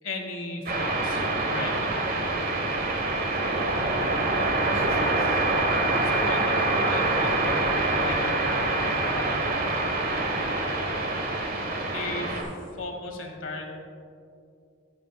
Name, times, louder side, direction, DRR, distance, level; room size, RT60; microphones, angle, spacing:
voice 1, 0.0-1.8 6.0-9.6 11.8-12.3 12.7-13.7, left 3 dB, 70° left, 3 dB, 1.5 m, -36 dB
sound 1, 0.7-12.4, right 2 dB, 45° right, 1.3 m, -25 dB
voice 2, 4.5-6.1 9.9-11.9, equal, 75° right, 2 dB, 1.7 m, -45 dB
13.0 x 10.0 x 2.4 m, 2.5 s
head